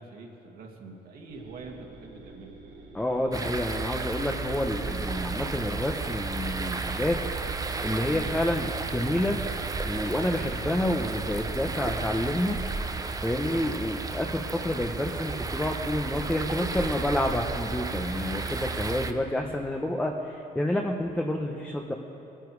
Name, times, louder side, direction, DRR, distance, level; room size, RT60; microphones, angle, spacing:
voice 1, 0.0-2.6 10.2-10.5 13.5-13.9, right 3 dB, 60° right, 0 dB, 2.0 m, -45 dB
sound 1, 1.3-19.6, right 2 dB, 80° right, 3.7 m, -50 dB
voice 2, 2.9-7.2 7.8-9.4 9.8-12.6 13.2-21.9, left 1 dB, 5° left, 2 dB, 1.0 m, -29 dB
sound 2, 3.3-19.1, right 4 dB, 20° right, 0.8 m, -33 dB
22.5 x 10.0 x 4.8 m, 2.9 s
cardioid pair, 110°, 17 cm